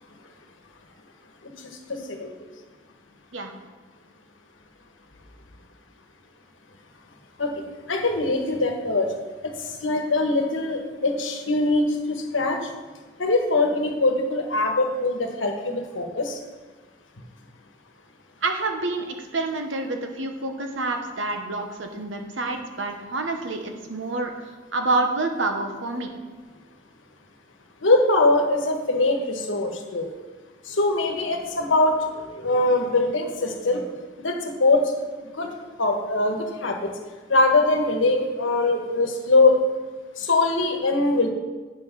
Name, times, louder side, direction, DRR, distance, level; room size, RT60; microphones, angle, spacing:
voice 1, 1.9-2.5 7.4-7.5 7.9-9.1 9.4-12.7 13.2-16.4 27.8-30.1 30.6-33.9 34.2-34.9 35.3-36.9 37.3-39.6 40.2-41.3, left 2 dB, 85° left, 4 dB, 1.2 m, -22 dB
voice 2, 18.4-24.3 24.7-26.1, right 2 dB, 75° right, 5 dB, 1.1 m, -28 dB
8.8 x 5.9 x 5.8 m, 1.4 s
head